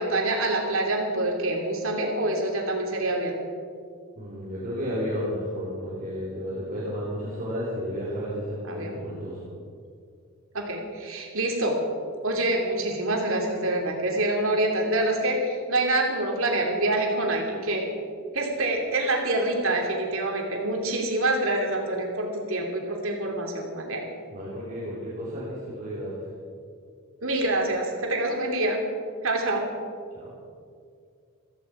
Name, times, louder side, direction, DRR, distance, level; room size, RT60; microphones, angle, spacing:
voice 1, 0.0-3.3 8.6-9.0 10.5-11.8 12.2-17.9 18.3-24.0 27.2-28.8 29.2-29.7, right 2 dB, 70° right, 1 dB, 2.8 m, -26 dB
voice 2, 4.2-9.4 24.3-26.1 30.1-30.3, equal, 40° right, -8 dB, 3.3 m, -32 dB
15.5 x 14.5 x 4.8 m, 2.3 s
head